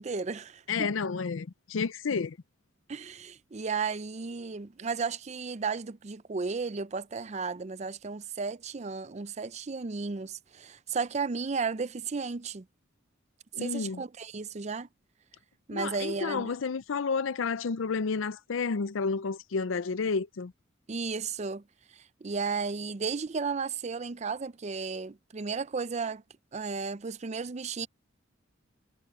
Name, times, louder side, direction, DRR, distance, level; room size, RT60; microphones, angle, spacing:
voice 1, 0.0-0.9 2.9-12.6 13.6-14.9 15.7-16.5 20.9-21.6 21.9-26.2 26.5-27.9, right 5 dB, 35° right, 0.5 m, -34 dB
voice 2, 0.7-2.4 13.5-14.0 15.7-20.5, left 5 dB, 90° left, 0.5 m, -31 dB
head